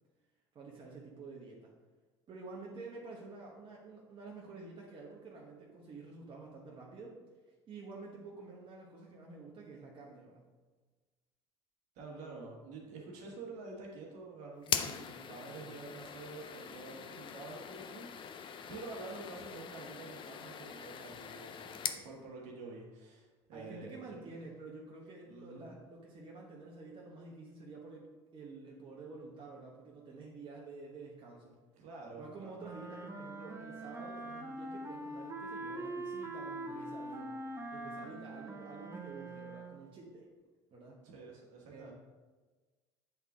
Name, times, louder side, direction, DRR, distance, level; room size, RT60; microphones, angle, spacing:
voice 1, 0.5-1.7 2.3-7.2 7.7-10.5 23.5-31.6 32.2-37.4 37.7-40.3 40.7-41.0 41.7-41.9, right 3 dB, 40° right, -3 dB, 1.1 m, -49 dB
voice 2, 11.9-24.2 25.3-25.8 31.8-32.6 41.0-41.9, right 3 dB, 60° right, -1 dB, 1.6 m, -48 dB
sound 1, 14.6-22.0, left 8 dB, 40° left, 0.5 m, -41 dB
sound 2, 32.6-39.9, right 2 dB, 20° right, 0.8 m, -43 dB
8.1 x 3.6 x 3.6 m, 1.3 s
hypercardioid pair, 75°, 14 cm